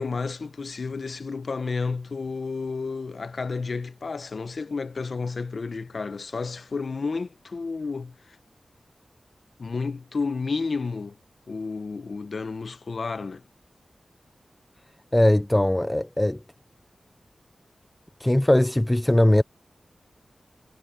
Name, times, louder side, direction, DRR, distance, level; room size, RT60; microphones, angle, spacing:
voice 1, 0.0-8.4 9.6-11.2 11.5-13.4, left 4 dB, 65° left, 0.9 m, -31 dB
voice 2, 15.1-16.4 18.2-19.4, left 1 dB, 15° left, 0.5 m, -20 dB
wide cardioid pair, 70°, 0 cm